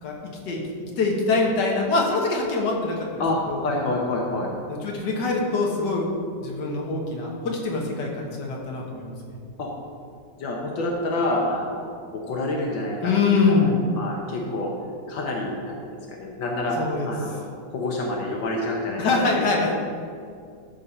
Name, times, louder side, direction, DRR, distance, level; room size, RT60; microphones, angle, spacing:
voice 1, 1.0-3.6 4.7-6.1 6.4-9.1 13.0-13.8 16.8-17.1 19.0-19.7, left 3 dB, 65° left, -1 dB, 2.0 m, -24 dB
voice 2, 3.2-4.5 9.6-9.7 10.4-14.7 15.1-16.8 17.0-17.4 17.7-19.5, left 2 dB, 85° left, -1 dB, 1.8 m, -28 dB
13.0 x 4.5 x 5.5 m, 2.2 s
omnidirectional pair, 2.0 m